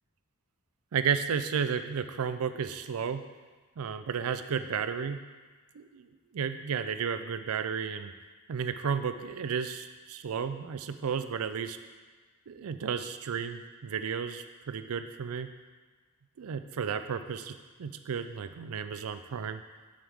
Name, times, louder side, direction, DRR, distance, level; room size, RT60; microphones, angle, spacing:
voice 1, 0.9-3.2 3.8-5.2 5.7-8.1 8.5-11.8 12.5-15.5 16.4-19.6, right 6 dB, 70° right, 10 dB, 0.4 m, -33 dB
7.2 x 6.3 x 3.5 m, 1.4 s
head